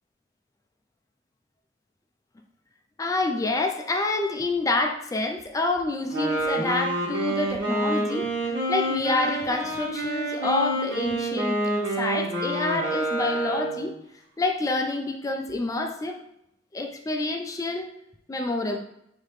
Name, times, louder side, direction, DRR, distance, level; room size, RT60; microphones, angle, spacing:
voice 1, 3.0-8.3 8.7-13.9 14.4-16.2 16.7-17.9 18.3-18.8, left 2 dB, 20° left, 3 dB, 0.3 m, -27 dB
Wind instrument woodwind instrument, 6.0-13.9, right 1 dB, 80° right, 1.4 m, -28 dB
4.8 x 2.8 x 3.1 m, 0.79 s
head